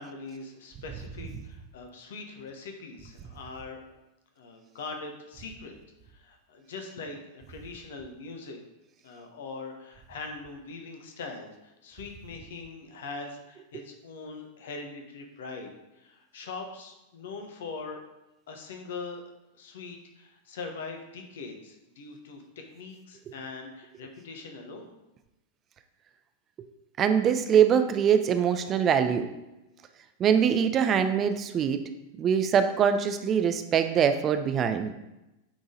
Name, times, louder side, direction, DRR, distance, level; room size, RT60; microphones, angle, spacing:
voice 1, 0.0-3.8 4.4-5.7 6.1-8.6 9.0-18.0 18.5-24.9, left 4 dB, 60° left, 4 dB, 1.1 m, -42 dB
voice 2, 27.0-29.3 30.2-31.8 32.2-34.9, right 8 dB, 30° right, 8 dB, 0.6 m, -23 dB
8.6 x 4.0 x 3.9 m, 0.96 s
figure-of-eight pair, 90°, 0 cm